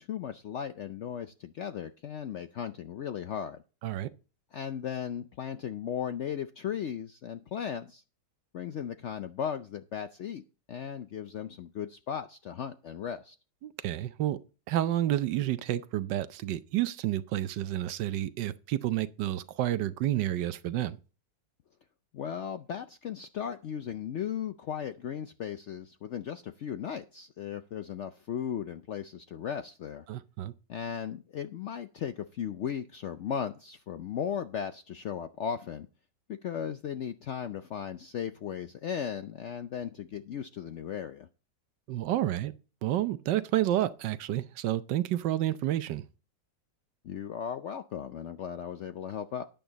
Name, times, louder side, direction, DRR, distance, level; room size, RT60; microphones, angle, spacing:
voice 1, 0.0-3.6 4.5-8.0 8.5-10.4 10.7-13.3 22.1-30.1 30.7-35.9 36.3-41.3 47.0-49.4, left 8 dB, 90° left, 0.6 m, -36 dB
voice 2, 13.6-14.4 14.7-21.0 30.1-30.5 41.9-42.5 42.8-46.0, right 13 dB, 80° right, 1.3 m, -30 dB
10.5 x 9.1 x 4.0 m
omnidirectional pair, 1.9 m